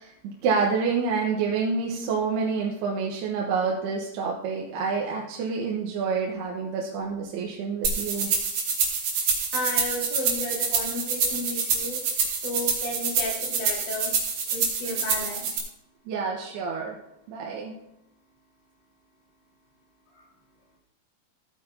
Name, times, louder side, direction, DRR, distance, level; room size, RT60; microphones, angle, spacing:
voice 1, 0.0-8.3 16.1-17.0 17.3-17.7, right 5 dB, 75° right, -2 dB, 2.9 m, -28 dB
sound 1, 7.8-15.6, right 5 dB, 55° right, 3.5 m, -26 dB
voice 2, 9.5-12.0 12.4-14.1 14.5-15.5 20.1-20.3, left 1 dB, 75° left, -4 dB, 5.7 m, -33 dB
15.5 x 9.3 x 2.7 m, 0.84 s
omnidirectional pair, 5.1 m